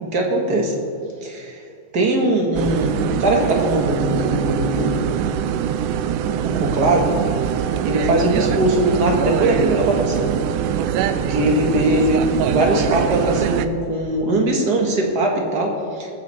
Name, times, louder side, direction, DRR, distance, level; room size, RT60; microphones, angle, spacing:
voice 1, 0.0-0.7 1.2-1.6 1.9-5.1 6.3-7.2 7.8-10.4 11.1-16.1, right 1 dB, 40° right, 1 dB, 1.8 m, -20 dB
sound 1, 2.6-13.7, right 9 dB, 90° right, 2.2 m, -23 dB
21.0 x 9.3 x 4.3 m, 2.4 s
omnidirectional pair, 3.7 m